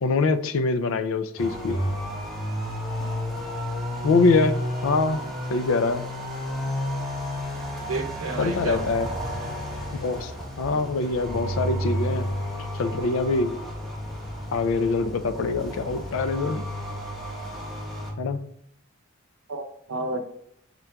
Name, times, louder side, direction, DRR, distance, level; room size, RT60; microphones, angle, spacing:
voice 1, 0.0-1.8 4.0-4.6 4.8-5.2 5.5-6.1 8.4-9.1 9.9-10.3 10.6-12.3 12.7-13.6 14.5-16.6 18.2-18.4, left 3 dB, 75° left, 10 dB, 0.4 m, -24 dB
sound 1, 1.4-18.1, equal, ahead, 1.0 m, -32 dB
voice 2, 7.9-8.9 10.7-10.8 19.5-20.2, right 2 dB, 90° right, 5 dB, 0.7 m, -31 dB
5.7 x 3.7 x 2.2 m, 0.71 s
head